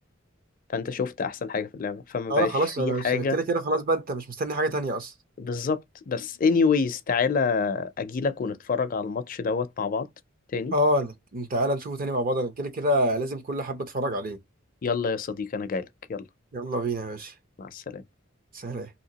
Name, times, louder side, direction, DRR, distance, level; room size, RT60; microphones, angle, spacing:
voice 1, 0.7-2.5 2.8-3.4 5.4-10.1 10.5-10.7 14.8-16.2 17.6-18.0, left 5 dB, 45° left, 0.4 m, -27 dB
voice 2, 2.3-5.1 10.7-14.4 16.5-17.3 18.5-18.9, right 1 dB, 45° right, 0.7 m, -27 dB
3.2 x 2.8 x 2.8 m
head